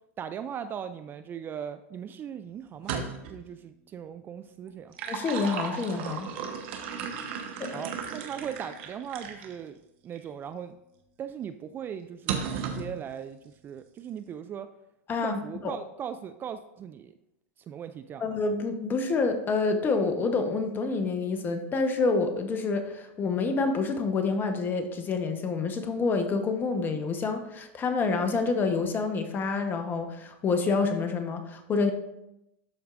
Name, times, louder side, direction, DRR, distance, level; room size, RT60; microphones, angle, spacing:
voice 1, 0.2-4.9 7.7-9.8 10.0-10.7 11.2-14.7 15.2-17.1 17.7-18.2, right 8 dB, 30° right, 11 dB, 0.3 m, -39 dB
sound 1, 2.7-3.4 4.7-9.5 10.2-10.3 12.3-12.9, right 7 dB, 60° right, 1.1 m, -35 dB
voice 2, 5.1-6.3 7.6-7.8 15.1-15.7 18.2-31.9, left 4 dB, 25° left, 7 dB, 1.0 m, -28 dB
12.0 x 4.5 x 2.5 m, 0.86 s
hypercardioid pair, 105°, 7 cm